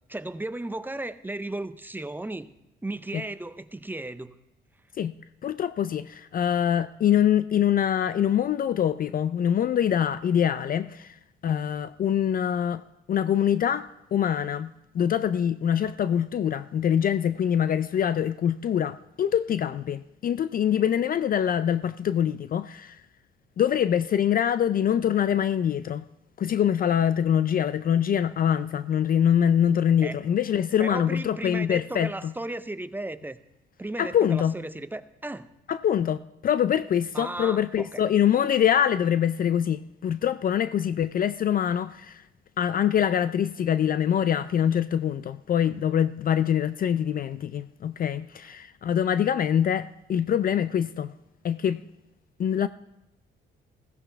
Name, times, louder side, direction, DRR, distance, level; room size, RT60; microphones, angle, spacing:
voice 1, 0.1-2.5 2.8-4.3 30.0-30.2 30.8-33.4 33.8-35.5 37.1-38.0, right 2 dB, 10° right, 0.6 m, -35 dB
voice 2, 5.4-11.2 11.4-23.0 23.6-26.0 26.4-32.3 34.0-34.5 35.7-36.2 36.4-42.2 42.6-51.2 51.4-51.8 52.4-52.7, left 9 dB, 45° left, 0.4 m, -24 dB
15.0 x 15.0 x 3.4 m
cardioid pair, 90°, 20 cm